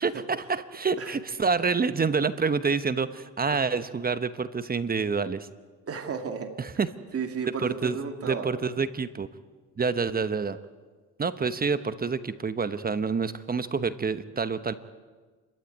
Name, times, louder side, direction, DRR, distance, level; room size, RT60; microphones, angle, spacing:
voice 1, 0.0-5.5 6.6-6.9 7.6-8.0 8.2-9.3 9.8-10.6 11.2-14.7, right 5 dB, 30° right, 12 dB, 1.0 m, -27 dB
voice 2, 5.9-6.5 7.1-8.5, right 6 dB, 50° right, 5 dB, 2.6 m, -33 dB
29.0 x 13.5 x 9.6 m, 1.4 s
cardioid pair, 90°, 30 cm